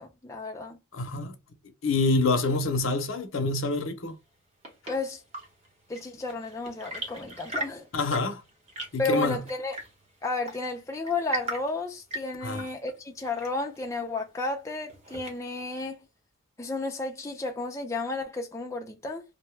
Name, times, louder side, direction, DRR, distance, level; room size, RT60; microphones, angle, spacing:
voice 1, 0.0-0.8 4.9-5.2 5.9-7.9 9.0-9.8 10.2-16.0 16.6-19.2, left 2 dB, 15° left, 0.4 m, -32 dB
voice 2, 0.9-1.3 1.8-4.1 7.9-8.4 8.9-9.4 12.4-12.7, left 3 dB, 70° left, 0.6 m, -26 dB
Chirp tweet / Engine / Tap, 4.2-15.7, right 2 dB, 30° right, 0.9 m, -41 dB
2.6 x 2.1 x 3.2 m
head